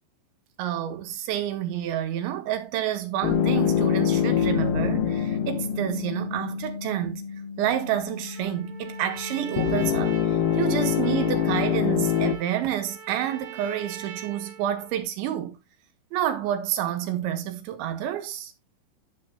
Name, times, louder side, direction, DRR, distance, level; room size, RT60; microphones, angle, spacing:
voice 1, 0.6-7.2 7.6-15.6 16.1-18.5, right 11 dB, 75° right, 3.6 m, -29 dB
sound 1, 3.2-6.6 9.6-12.4, left 9 dB, 85° left, 2.0 m, -25 dB
Bass guitar, 3.3-9.6, left 5 dB, 65° left, 3.3 m, -31 dB
Trumpet, 8.2-15.0, right 8 dB, 50° right, 4.0 m, -42 dB
13.5 x 7.3 x 2.3 m
omnidirectional pair, 5.5 m